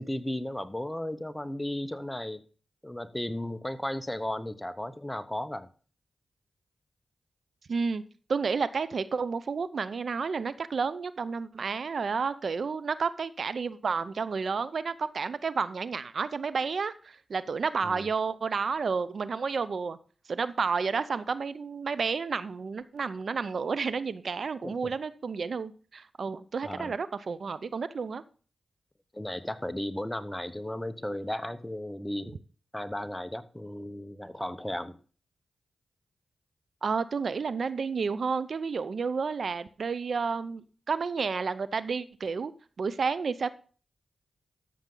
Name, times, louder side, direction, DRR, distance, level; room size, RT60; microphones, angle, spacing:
voice 1, 0.0-2.4 2.8-5.7 17.8-18.1 24.6-24.9 26.6-26.9 29.1-32.4 32.7-35.0, left 1 dB, 10° left, 12 dB, 1.0 m, -35 dB
voice 2, 7.7-8.0 8.3-20.0 20.3-28.2 36.8-42.5 42.8-43.5, right 5 dB, 65° right, 16 dB, 0.6 m, -31 dB
13.0 x 6.9 x 3.8 m, 0.39 s
cardioid pair, 55°, 0 cm